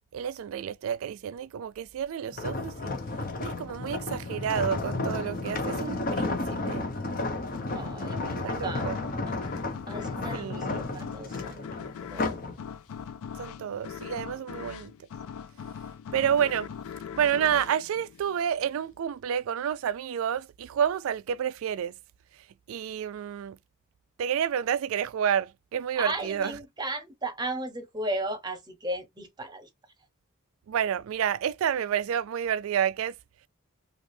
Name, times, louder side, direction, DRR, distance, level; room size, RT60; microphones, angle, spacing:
voice 1, 0.1-2.9 3.4-6.9 8.4-9.0 10.3-10.9 13.4-14.9 16.1-16.7 17.1-21.9 22.7-23.6 24.2-26.6 30.7-33.1, right 8 dB, 70° right, 0.3 m, -29 dB
sound 1, 2.3-12.5 13.0-13.3, left 2 dB, 40° left, 0.7 m, -32 dB
sound 2, 7.5-18.8, left 7 dB, 80° left, 0.3 m, -41 dB
voice 2, 7.7-9.0 9.2-9.3 9.9-11.7 12.1-12.4 26.0-29.7, right 1 dB, 20° right, 0.9 m, -35 dB
3.3 x 2.5 x 2.7 m
head